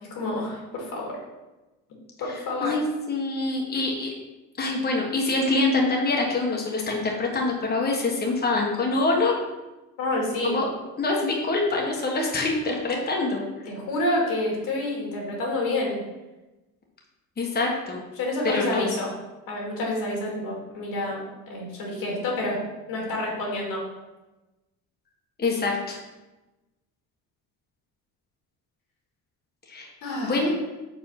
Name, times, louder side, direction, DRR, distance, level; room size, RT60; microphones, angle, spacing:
voice 1, 0.0-1.2 2.2-2.8 10.0-10.6 13.7-16.0 18.2-19.1 19.5-22.6 22.9-23.8 30.0-30.4, left 1 dB, 75° left, -2 dB, 2.3 m, -28 dB
voice 2, 2.6-4.1 4.6-9.3 10.4-10.7 11.0-13.4 17.4-18.0 18.4-18.9 25.4-26.0 29.7-29.9 30.2-30.5, left 3 dB, 25° left, -1 dB, 1.4 m, -25 dB
4.8 x 4.1 x 5.9 m, 1.1 s
supercardioid pair, 85°, 35 cm